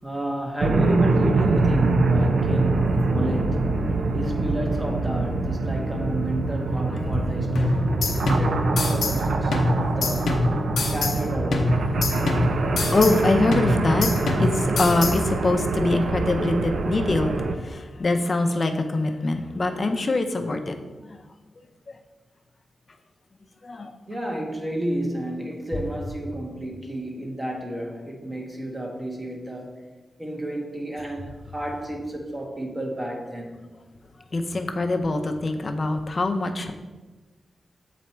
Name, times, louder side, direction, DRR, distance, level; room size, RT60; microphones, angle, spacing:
voice 1, 0.0-3.6 4.1-10.4 10.9-11.7 24.1-29.8 30.2-33.6, right 1 dB, 15° right, 1 dB, 1.1 m, -31 dB
sound 1, 0.6-17.6, right 3 dB, 70° right, 0.6 m, -24 dB
voice 2, 6.7-7.2 12.3-14.1 14.4-21.2 21.9-22.0 23.6-23.9 34.3-36.7, left 2 dB, 35° left, 5 dB, 0.6 m, -24 dB
sound 2, 7.6-9.2 9.5-11.2 11.5-13.2 13.5-15.2, left 2 dB, 85° left, 0.7 m, -25 dB
7.3 x 4.1 x 4.5 m, 1.2 s
wide cardioid pair, 135°, 0 cm